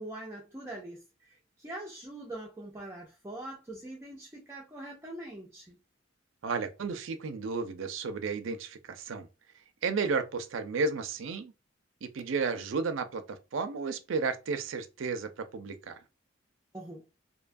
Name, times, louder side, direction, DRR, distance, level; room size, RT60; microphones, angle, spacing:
voice 1, 0.0-5.8 16.7-17.1, right 1 dB, 15° right, 0.4 m, -43 dB
voice 2, 6.4-9.3 9.8-11.5 12.0-16.0, right 4 dB, 80° right, 0.5 m, -33 dB
2.7 x 2.2 x 2.5 m
head